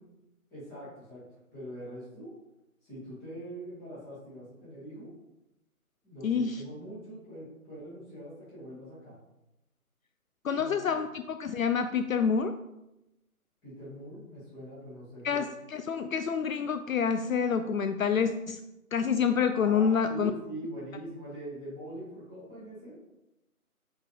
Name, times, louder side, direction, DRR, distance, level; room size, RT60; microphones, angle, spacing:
voice 1, 0.5-1.2 1.5-2.3 2.8-5.1 6.0-9.2 10.6-11.0 13.6-15.4 19.6-23.0, right 1 dB, 15° left, -10 dB, 2.3 m, -43 dB
voice 2, 6.2-6.6 10.4-12.6 15.2-18.6 18.9-20.3, left 6 dB, 65° left, 9 dB, 0.5 m, -27 dB
5.9 x 5.0 x 3.4 m, 0.92 s
hypercardioid pair, 165°, 44 cm